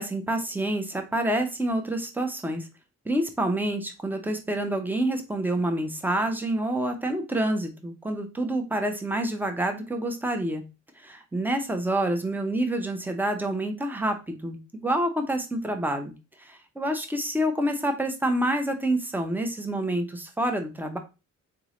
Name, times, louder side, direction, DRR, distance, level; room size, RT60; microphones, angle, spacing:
voice 1, 0.0-2.7 3.0-10.6 11.0-16.1 16.4-21.0, right 1 dB, 5° right, 5 dB, 0.8 m, -27 dB
4.0 x 3.5 x 3.1 m, 0.28 s
cardioid pair, 105°, 31 cm